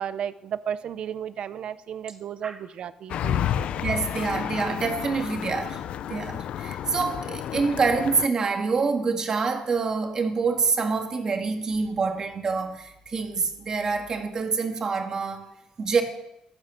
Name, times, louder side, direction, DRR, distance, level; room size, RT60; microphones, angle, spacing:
voice 1, 0.0-3.7, right 9 dB, 55° right, 0.7 m, -34 dB
sound 1, 3.1-8.3, left 10 dB, 70° left, 0.6 m, -31 dB
voice 2, 3.8-5.8 6.1-15.5 15.8-16.0, right 4 dB, 35° right, 2.1 m, -26 dB
15.5 x 13.5 x 7.0 m
cardioid pair, 160°, 2 cm